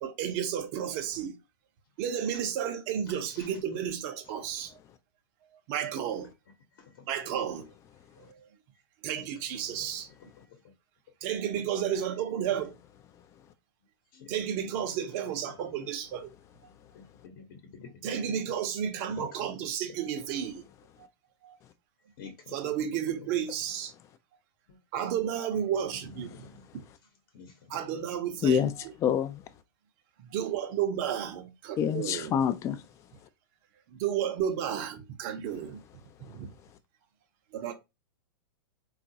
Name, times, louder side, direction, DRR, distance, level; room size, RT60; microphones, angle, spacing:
voice 1, 0.0-1.4 2.0-4.8 5.7-6.3 7.1-7.7 8.2-8.5 9.0-10.1 11.2-12.7 14.3-16.3 18.0-20.6 21.4-21.6 22.5-23.9 24.9-26.3 26.7-26.8 27.7-28.9 30.2-32.3 33.9-35.8 36.3-36.5 37.5-37.7, right 9 dB, 45° right, 0.7 m, -32 dB
voice 2, 15.4-15.9 16.9-17.4 17.7-18.4 19.1-19.7 22.2-22.5 24.7-24.8 25.9-26.6 27.3-28.1, left 5 dB, 60° left, 0.9 m, -49 dB
voice 3, 29.0-29.3 31.8-32.8, left 8 dB, 25° left, 0.3 m, -26 dB
3.7 x 2.4 x 2.7 m
hypercardioid pair, 130°, 12 cm